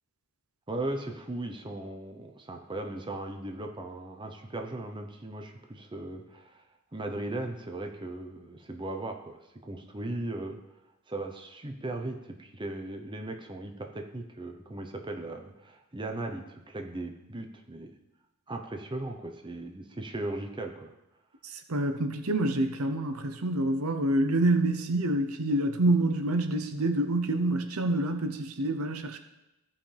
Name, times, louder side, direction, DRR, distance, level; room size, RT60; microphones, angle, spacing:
voice 1, 0.7-6.6 6.9-10.6 11.1-17.9 18.5-20.9, right 2 dB, 20° right, 4 dB, 0.8 m, -37 dB
voice 2, 21.4-29.2, right 1 dB, 80° right, 7 dB, 0.8 m, -27 dB
15.0 x 5.7 x 3.4 m, 0.95 s
head